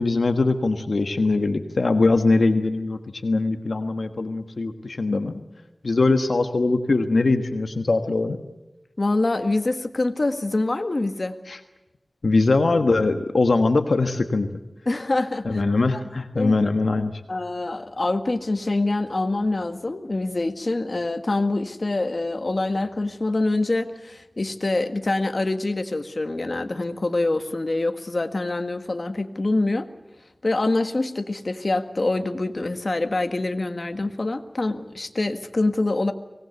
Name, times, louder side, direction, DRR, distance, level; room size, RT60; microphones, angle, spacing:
voice 1, 0.0-5.4 5.8-8.4 11.5-11.6 12.2-14.5 15.4-17.1, left 3 dB, 90° left, 7 dB, 1.4 m, -21 dB
voice 2, 9.0-11.3 14.8-15.6 15.9-16.0 16.3-16.5 17.3-29.9 30.4-36.1, left 2 dB, 60° left, 8 dB, 1.7 m, -25 dB
24.5 x 19.0 x 8.1 m, 1.0 s
wide cardioid pair, 50°, 0 cm